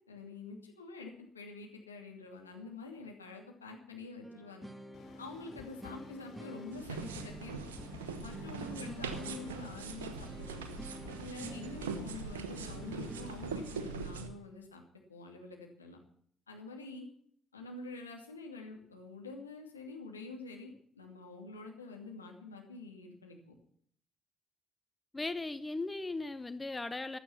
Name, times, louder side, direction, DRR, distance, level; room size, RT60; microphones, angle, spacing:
voice 1, 0.1-4.7 5.2-7.6 8.2-10.8 11.2-14.8 15.1-16.0 16.5-17.1 17.5-23.4, left 3 dB, 85° left, 1 dB, 2.6 m, -47 dB
sound 1, 4.2-13.3, equal, 5° right, 1.6 m, -48 dB
sound 2, 4.9-13.9, left 5 dB, 55° left, 2.9 m, -54 dB
sound 3, 6.7-14.3, right 5 dB, 75° right, 1.2 m, -42 dB
voice 2, 25.1-27.2, left 2 dB, 20° left, 14 dB, 1.0 m, -37 dB
16.0 x 11.5 x 5.8 m, 0.62 s
figure-of-eight pair, 45°, 0 cm